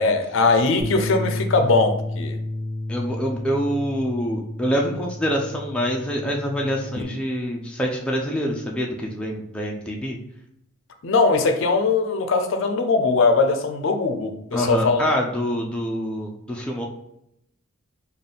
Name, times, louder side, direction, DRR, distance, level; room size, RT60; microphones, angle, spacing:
voice 1, 0.0-2.4 7.0-7.1 11.0-15.0, left 3 dB, 65° left, 6 dB, 0.5 m, -20 dB
Bass guitar, 0.8-7.0, left 1 dB, 70° right, 1.2 m, -31 dB
voice 2, 2.9-10.2 14.5-16.9, equal, 5° left, -2 dB, 0.4 m, -26 dB
3.4 x 2.3 x 3.9 m, 0.77 s
head